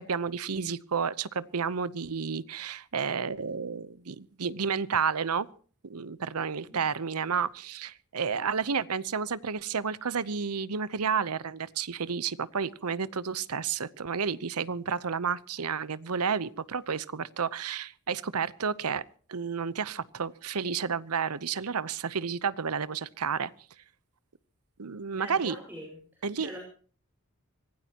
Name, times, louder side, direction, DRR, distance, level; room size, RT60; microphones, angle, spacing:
voice 1, 0.0-5.5 5.8-19.0 19.3-23.5 24.8-25.6 26.2-26.5, right 6 dB, 80° right, 18 dB, 0.8 m, -31 dB
voice 2, 25.2-26.6, equal, 10° right, 0 dB, 5.2 m, -44 dB
25.0 x 16.5 x 2.9 m, 0.43 s
head